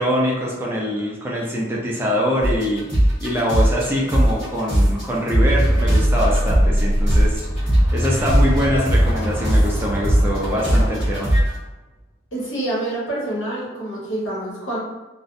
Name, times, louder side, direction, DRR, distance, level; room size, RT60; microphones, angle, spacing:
voice 1, 0.0-11.3, equal, 10° right, -4 dB, 0.4 m, -24 dB
sound 1, 2.4-5.0 5.3-11.5, equal, 25° left, 1.3 m, -18 dB
sound 2, 5.4-11.6, equal, 45° left, 1.2 m, -22 dB
voice 2, 12.3-14.8, right 1 dB, 90° left, -6 dB, 1.1 m, -27 dB
2.5 x 2.0 x 2.6 m, 1.1 s
head